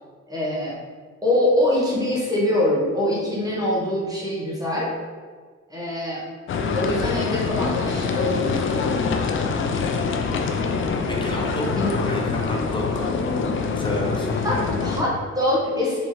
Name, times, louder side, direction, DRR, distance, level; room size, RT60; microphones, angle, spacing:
voice 1, 0.3-0.8 1.2-4.9 5.7-6.3 6.7-8.9 11.7-12.0 14.4-16.1, left 1 dB, 10° right, -6 dB, 1.1 m, -24 dB
sound 1, 6.5-15.0, left 4 dB, 45° left, 0.4 m, -24 dB
voice 2, 11.1-11.7 12.0-13.1 13.7-14.4, equal, 15° left, -1 dB, 0.8 m, -30 dB
3.5 x 3.1 x 3.1 m, 1.5 s
cardioid pair, 90°, 30 cm